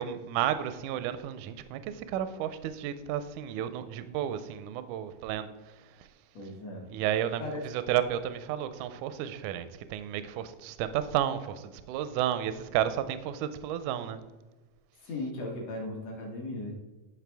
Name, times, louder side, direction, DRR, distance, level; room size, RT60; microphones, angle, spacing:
voice 1, 0.0-6.1 6.8-14.2, right 11 dB, 80° right, 12 dB, 1.8 m, -32 dB
voice 2, 6.3-6.9 7.4-7.6 15.0-16.7, left 2 dB, 60° left, 0 dB, 2.0 m, -37 dB
11.0 x 5.5 x 3.4 m, 1.2 s
omnidirectional pair, 3.9 m